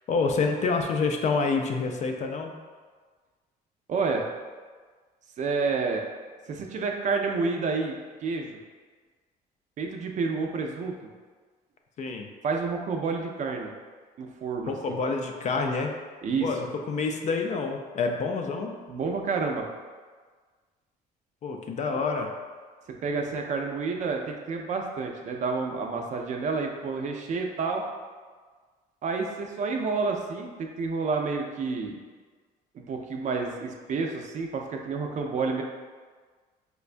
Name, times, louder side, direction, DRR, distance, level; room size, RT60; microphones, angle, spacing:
voice 1, 0.1-2.5 12.0-12.3 14.6-15.9 16.4-18.7 21.4-22.3, left 4 dB, 45° left, 3 dB, 0.4 m, -27 dB
voice 2, 3.9-4.3 5.4-6.0 6.5-8.6 9.8-11.0 12.4-13.7 14.2-15.0 16.2-16.5 18.9-19.7 23.0-27.8 29.0-31.9 32.9-35.6, right 4 dB, 45° right, 2 dB, 0.4 m, -29 dB
4.4 x 2.2 x 2.5 m, 1.5 s
cardioid pair, 110°, 17 cm